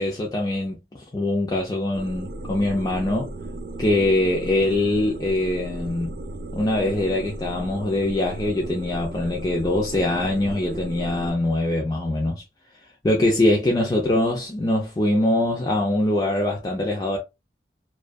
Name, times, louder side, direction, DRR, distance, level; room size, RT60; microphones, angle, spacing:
voice 1, 0.0-3.3 3.8-6.2 6.5-12.4 13.0-17.2, left 1 dB, 20° left, 0.4 m, -23 dB
sound 1, 1.9-11.3, right 2 dB, 50° right, 0.3 m, -35 dB
2.5 x 2.2 x 2.2 m
head